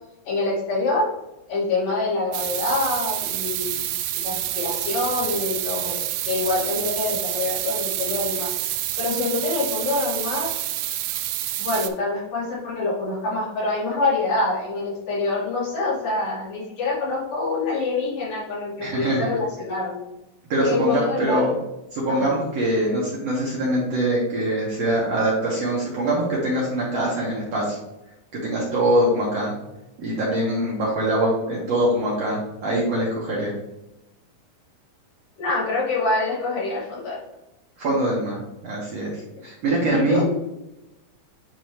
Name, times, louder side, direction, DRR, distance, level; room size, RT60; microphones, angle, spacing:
voice 1, 0.3-1.1 1.5-3.9 4.2-10.5 11.6-20.1 20.6-21.5 22.1-22.3 35.4-37.2 39.9-40.2, left 3 dB, 60° left, -7 dB, 3.7 m, -26 dB
sound 1, 2.3-11.9, right 13 dB, 85° right, 1.8 m, -28 dB
voice 2, 18.8-19.3 20.5-21.6 21.9-27.8 28.3-29.5 30.0-33.5 37.8-40.2, right 1 dB, 60° right, -5 dB, 2.0 m, -23 dB
9.0 x 3.9 x 3.1 m, 0.95 s
omnidirectional pair, 4.2 m